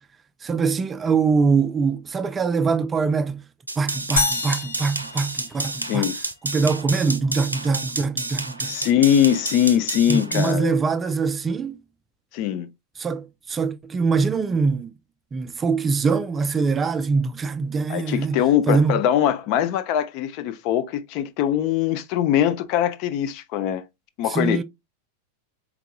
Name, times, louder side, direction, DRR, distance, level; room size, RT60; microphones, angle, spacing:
voice 1, 0.4-3.4 3.8-6.1 6.4-8.8 10.1-11.8 13.0-14.9 15.3-19.0 24.3-24.6, right 4 dB, 20° right, 0.4 m, -23 dB
sound 1, 3.7-10.5, right 2 dB, 85° right, 0.5 m, -30 dB
sound 2, 4.2-6.1, left 3 dB, 75° left, 1.0 m, -27 dB
voice 2, 5.9-6.2 8.7-10.7 12.3-12.7 17.9-23.8 24.2-24.6, left 10 dB, 45° left, 0.5 m, -22 dB
4.7 x 3.5 x 2.2 m
figure-of-eight pair, 90°, 0 cm